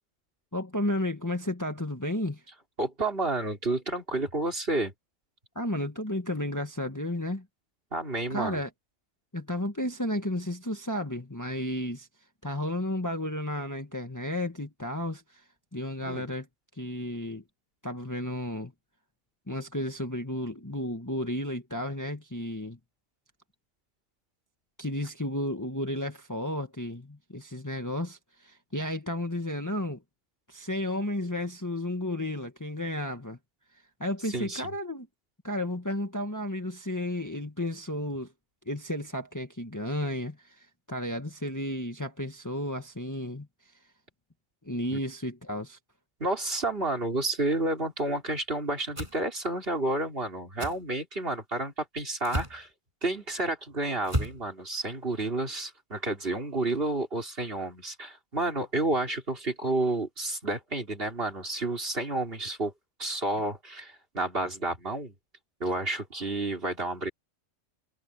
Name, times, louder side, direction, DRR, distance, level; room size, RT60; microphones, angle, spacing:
voice 1, 0.5-2.4 5.5-7.4 8.3-8.7 9.3-12.1 12.4-15.4 15.7-16.4 16.8-17.4 17.8-18.7 19.5-22.8 24.8-30.0 30.5-33.4 34.0-35.1 35.4-38.3 38.6-43.5 44.6-45.8, left 1 dB, 15° left, 1.6 m, -33 dB
voice 2, 2.8-4.9 7.9-8.6 16.0-16.3 34.3-34.7 44.9-45.0 46.2-52.7 53.0-62.7 63.0-65.1 65.6-67.1, right 2 dB, 45° right, 4.0 m, -30 dB
sound 1, 48.9-49.2 50.6-50.8 52.2-52.6 54.0-54.4, right 1 dB, 20° right, 7.4 m, -31 dB
omnidirectional pair, 1.4 m